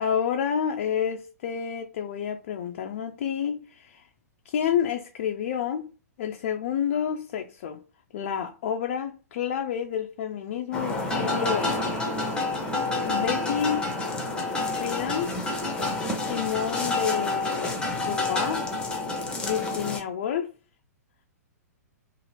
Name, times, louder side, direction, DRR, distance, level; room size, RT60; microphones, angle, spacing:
voice 1, 0.0-4.1 4.5-5.9 6.2-7.8 8.1-12.0 13.0-13.9 14.8-15.3 16.3-18.7 19.4-20.5, left 8 dB, 45° left, 0.3 m, -29 dB
flagpole line hitting pole in wind, 10.7-20.0, left 2 dB, 10° left, 0.7 m, -28 dB
2.7 x 2.6 x 2.9 m
figure-of-eight pair, 110°, 9 cm